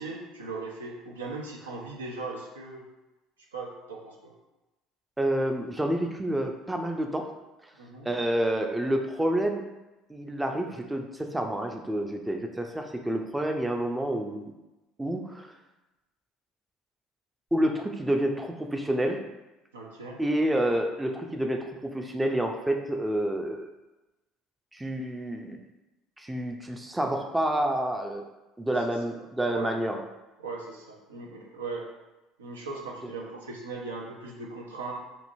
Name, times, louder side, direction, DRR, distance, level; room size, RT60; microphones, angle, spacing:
voice 1, 0.0-2.8 3.5-4.3 7.8-8.1 19.7-20.2 29.1-29.7 30.4-31.9 32.4-34.9, right 3 dB, 90° right, -1 dB, 0.5 m, -38 dB
voice 2, 5.2-7.3 8.0-9.6 10.1-14.5 15.0-15.5 17.5-19.2 20.2-23.7 24.7-25.6 26.2-28.2 28.6-30.0 33.0-33.1, right 1 dB, 10° right, 3 dB, 0.4 m, -28 dB
2.9 x 2.6 x 2.6 m, 1.0 s
hypercardioid pair, 65°, 0 cm